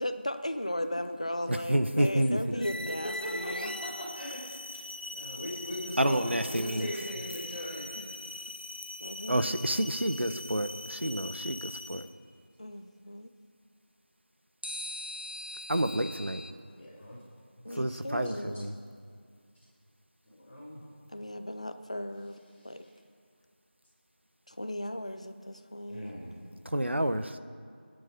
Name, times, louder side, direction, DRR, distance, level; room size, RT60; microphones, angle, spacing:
voice 1, 0.0-3.8 8.0-8.2 9.0-9.6 12.6-13.3 17.6-18.8 21.1-22.4 22.6-22.8 24.5-26.1, left 1 dB, 35° left, 9 dB, 0.8 m, -36 dB
voice 2, 1.5-2.4 6.0-6.9 9.3-12.1 15.7-16.4 17.8-18.7 26.6-27.3, right 1 dB, 80° right, 10 dB, 1.1 m, -29 dB
voice 3, 2.3-2.6 3.2-4.5 5.1-7.9 16.7-17.2 18.2-18.3 20.3-20.8 25.9-26.3, equal, 5° left, -12 dB, 2.1 m, -39 dB
sound 1, 2.6-12.2, left 2 dB, 55° left, 1.1 m, -41 dB
sound 2, 7.0-8.2 14.6-16.5, left 1 dB, 60° right, 1.2 m, -42 dB
21.5 x 10.0 x 5.2 m, 2.2 s
figure-of-eight pair, 175°, 6 cm